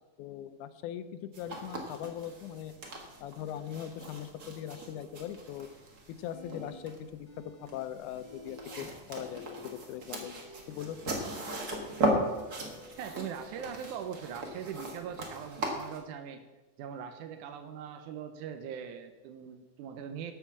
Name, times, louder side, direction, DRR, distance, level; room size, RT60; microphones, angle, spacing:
voice 1, 0.2-2.7 3.2-5.7 6.2-7.3 7.6-9.4 9.9-11.1, left 10 dB, 85° left, 11 dB, 2.1 m, -40 dB
sound 1, 1.3-16.0, right 1 dB, 40° right, 1.5 m, -38 dB
sound 2, 6.3-6.8 7.2-7.8 8.1-8.8 9.2-13.8, left 3 dB, 35° left, 0.7 m, -52 dB
voice 2, 13.0-16.4 16.8-20.3, right 8 dB, 90° right, 7 dB, 2.2 m, -41 dB
12.5 x 4.6 x 7.2 m, 1.2 s
omnidirectional pair, 3.5 m